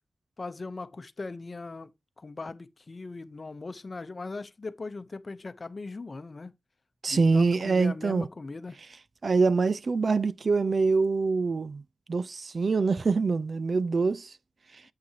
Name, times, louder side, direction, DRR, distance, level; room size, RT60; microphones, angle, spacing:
voice 1, 0.4-1.9 2.2-6.5 7.1-8.8, left 3 dB, 35° left, 0.8 m, -39 dB
voice 2, 7.0-8.3 9.2-11.8 12.1-14.4 14.7-14.8, right 4 dB, 50° right, 0.4 m, -25 dB
8.5 x 7.6 x 2.9 m
wide cardioid pair, 110°, 0 cm